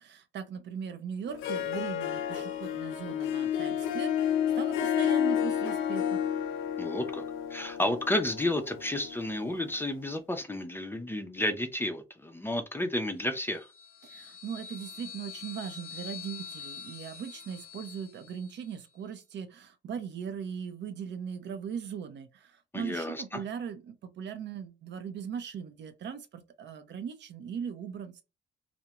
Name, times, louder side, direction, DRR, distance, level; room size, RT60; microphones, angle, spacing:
voice 1, 0.0-6.2 14.0-28.2, right 7 dB, 65° right, 0.6 m, -39 dB
Harp, 1.3-9.9, left 9 dB, 90° left, 0.4 m, -31 dB
voice 2, 6.8-7.2 7.5-13.7 22.7-23.4, left 1 dB, 10° left, 0.5 m, -31 dB
sound 1, 13.3-18.8, left 7 dB, 45° left, 0.8 m, -46 dB
2.3 x 2.1 x 2.8 m
cardioid pair, 90°, 20 cm